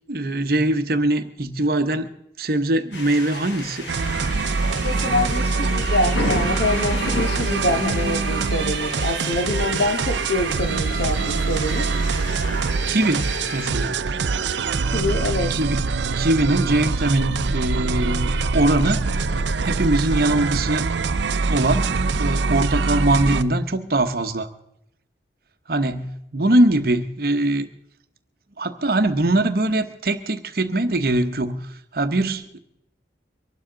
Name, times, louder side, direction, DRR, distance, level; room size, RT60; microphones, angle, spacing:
voice 1, 0.1-2.1 2.4-3.9 12.9-14.0 15.5-15.8 16.2-19.4 19.6-20.9 21.5-24.5 25.7-27.7 28.6-32.6, right 1 dB, 55° right, 9 dB, 1.0 m, -22 dB
sound 1, 2.9-13.7, left 2 dB, 85° left, 2.4 m, -33 dB
sound 2, 3.9-23.4, right 4 dB, 80° right, 0.6 m, -24 dB
voice 2, 4.8-11.9 14.9-15.5, left 1 dB, 65° left, 5 dB, 2.1 m, -25 dB
24.0 x 12.0 x 3.9 m, 0.79 s
head